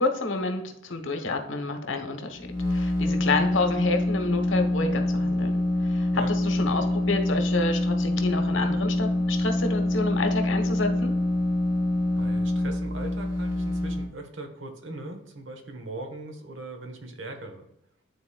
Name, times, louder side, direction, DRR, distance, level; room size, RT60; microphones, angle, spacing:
voice 1, 0.0-11.1, left 3 dB, 90° left, 5 dB, 1.1 m, -29 dB
sound 1, 2.4-14.1, left 1 dB, 20° left, 2.3 m, -25 dB
voice 2, 12.2-17.7, right 2 dB, 85° right, 4 dB, 1.2 m, -39 dB
11.5 x 4.0 x 2.3 m, 0.79 s
head